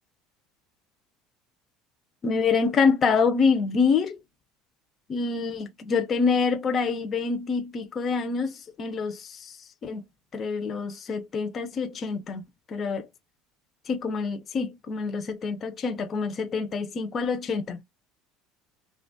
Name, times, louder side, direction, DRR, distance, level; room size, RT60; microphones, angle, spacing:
voice 1, 2.2-4.2 5.1-9.5 9.8-10.0 10.3-12.4 12.7-13.1 13.9-17.8, left 5 dB, 30° left, 0.4 m, -26 dB
2.9 x 2.2 x 2.5 m
cardioid pair, 145°, 0 cm